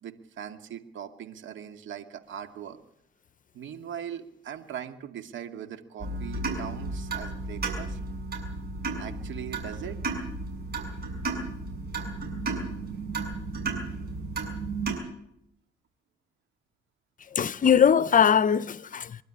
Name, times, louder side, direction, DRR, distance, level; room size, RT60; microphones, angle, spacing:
voice 1, 0.0-2.8 3.5-8.0 9.0-10.0, right 9 dB, 75° right, 2.3 m, -40 dB
sound 1, 6.0-14.9, right 3 dB, 50° right, 7.0 m, -33 dB
voice 2, 17.3-19.2, left 8 dB, 40° left, 0.7 m, -21 dB
24.5 x 12.0 x 10.0 m
cardioid pair, 90°, 20 cm